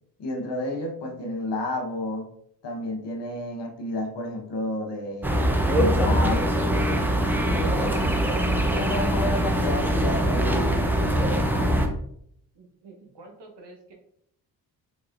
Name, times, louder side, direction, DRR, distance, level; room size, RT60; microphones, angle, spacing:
voice 1, 0.2-2.3 2.6-5.4 5.7-6.4 7.5-8.2 8.7-10.8, left 1 dB, 65° left, 2 dB, 1.0 m, -31 dB
sound 1, 5.2-11.9, equal, 5° right, 0.5 m, -23 dB
voice 2, 8.6-8.9 12.5-13.9, right 3 dB, 60° right, 2 dB, 1.1 m, -48 dB
3.6 x 3.0 x 2.5 m, 0.69 s
supercardioid pair, 50°, 46 cm